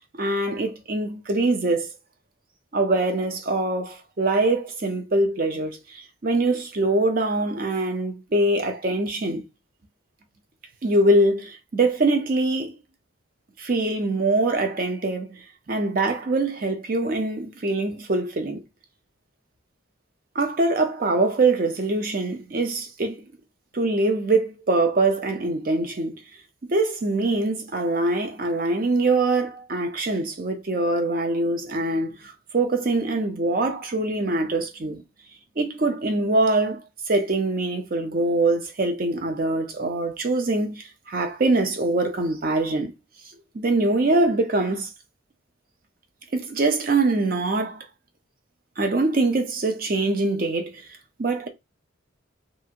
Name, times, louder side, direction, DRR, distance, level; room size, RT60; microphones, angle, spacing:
voice 1, 0.2-1.9 2.7-9.4 10.8-12.8 13.6-15.3 15.7-18.6 20.3-23.2 23.7-26.1 26.6-35.0 35.6-36.8 37.1-42.9 43.5-44.9 46.3-47.9 48.8-50.8 51.2-51.5, right 2 dB, 45° right, 0.5 m, -23 dB
2.7 x 2.4 x 2.7 m
head